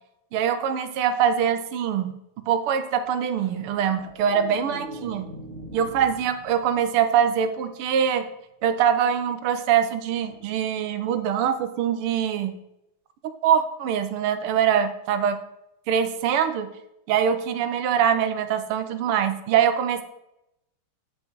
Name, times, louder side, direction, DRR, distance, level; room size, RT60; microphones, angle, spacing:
voice 1, 0.3-2.2 2.5-5.3 5.7-8.3 8.6-12.5 13.4-15.4 15.9-16.7 17.1-20.0, right 8 dB, 80° right, 10 dB, 1.7 m, -23 dB
sound 1, 3.4-7.9 10.3-10.5, right 1 dB, 30° right, 1.8 m, -42 dB
9.3 x 5.4 x 4.5 m, 0.86 s
omnidirectional pair, 2.4 m